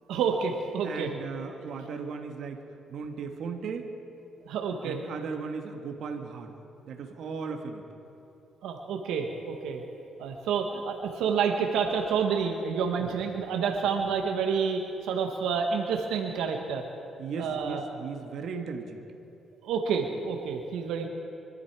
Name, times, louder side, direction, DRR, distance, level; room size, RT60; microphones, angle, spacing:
voice 1, 0.1-1.1 4.4-5.0 8.6-9.8 10.2-16.8 17.4-17.8 19.6-21.1, right 6 dB, 85° right, 3 dB, 1.3 m, -29 dB
voice 2, 0.8-2.6 2.9-3.9 4.8-6.5 6.8-7.8 13.0-13.1 17.2-19.0, right 5 dB, 70° right, 4 dB, 1.5 m, -36 dB
24.5 x 12.5 x 4.7 m, 2.8 s
cardioid pair, 90°, 0 cm